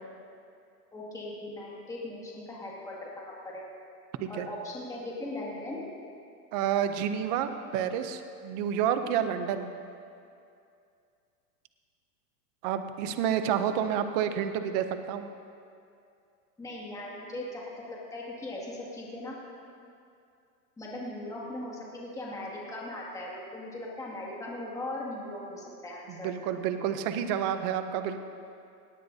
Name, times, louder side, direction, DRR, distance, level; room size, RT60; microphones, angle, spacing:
voice 1, 0.9-3.6 4.3-5.8 16.6-17.6 17.9-19.3 20.8-26.3, left 1 dB, 5° left, -5 dB, 2.1 m, -39 dB
voice 2, 6.5-9.7 12.6-15.3 26.1-28.2, right 9 dB, 25° right, 9 dB, 0.5 m, -29 dB
18.5 x 18.0 x 2.7 m, 2.5 s
supercardioid pair, 155°, 48 cm